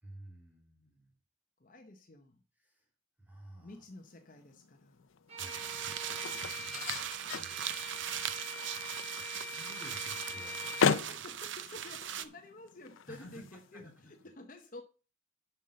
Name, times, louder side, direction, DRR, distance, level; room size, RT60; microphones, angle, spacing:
voice 1, 0.0-1.1 2.6-2.9 3.2-3.8 5.3-5.8 7.4-8.0 9.3-11.2 13.1-13.4 13.7-14.1, right 1 dB, 10° right, 3.1 m, -53 dB
voice 2, 1.6-2.4 3.6-5.1 6.6-7.1 11.1-14.8, left 2 dB, 40° left, 0.9 m, -51 dB
sound 1, 3.9-14.3, left 6 dB, 80° left, 0.6 m, -38 dB
Bowed string instrument, 5.3-11.0, left 1 dB, 30° right, 1.2 m, -44 dB
sound 2, 5.4-12.2, right 9 dB, 70° right, 0.7 m, -39 dB
7.1 x 5.7 x 6.4 m
head